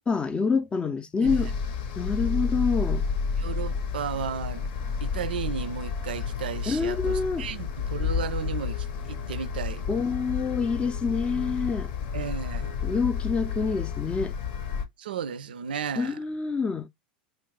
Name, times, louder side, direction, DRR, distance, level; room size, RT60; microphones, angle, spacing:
voice 1, 0.0-1.5 2.0-3.1 6.7-7.5 9.9-11.9 12.8-14.3 16.0-16.9, left 5 dB, 20° left, 0.4 m, -27 dB
voice 2, 1.2-1.5 3.4-4.7 5.0-9.8 12.1-12.8 15.0-16.2, right 7 dB, 85° right, 0.4 m, -34 dB
sound 1, 1.3-14.9, left 6 dB, 65° left, 0.8 m, -31 dB
3.8 x 2.5 x 3.1 m
hypercardioid pair, 95°, 5 cm